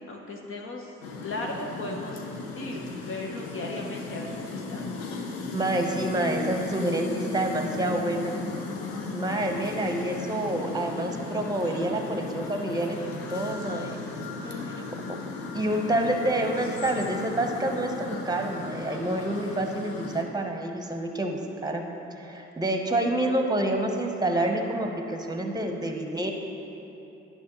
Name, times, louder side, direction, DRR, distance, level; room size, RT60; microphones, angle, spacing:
voice 1, 0.1-0.9 1.2-2.3 2.5-4.9 14.4-14.9, left 2 dB, 45° left, 0 dB, 0.9 m, -37 dB
sound 1, 1.0-20.2, left 3 dB, 80° left, 0.7 m, -36 dB
voice 2, 5.5-8.3 9.1-13.0 13.3-14.0 15.5-21.8 22.2-26.3, right 1 dB, 15° right, 3 dB, 1.0 m, -28 dB
10.5 x 5.6 x 3.1 m, 2.9 s
hypercardioid pair, 40°, 30 cm